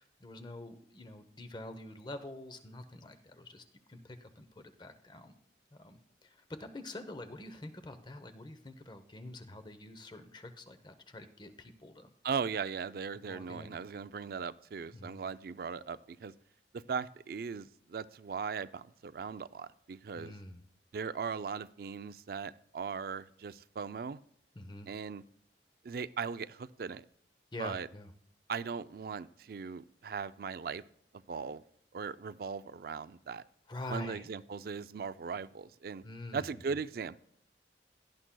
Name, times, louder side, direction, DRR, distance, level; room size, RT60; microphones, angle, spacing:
voice 1, 0.0-5.3 5.7-12.1 13.2-13.8 14.9-15.3 20.2-20.6 24.6-24.9 27.5-28.1 33.7-34.3 36.0-36.5, left 2 dB, 25° left, 9 dB, 0.8 m, -46 dB
voice 2, 12.2-16.3 16.7-20.3 20.9-24.2 24.9-25.2 25.8-27.0 27.6-27.9 28.5-30.8 31.3-31.6 31.9-33.4 33.9-36.0 36.3-37.2, right 5 dB, 55° right, 15 dB, 0.4 m, -38 dB
17.0 x 11.5 x 2.2 m, 0.66 s
head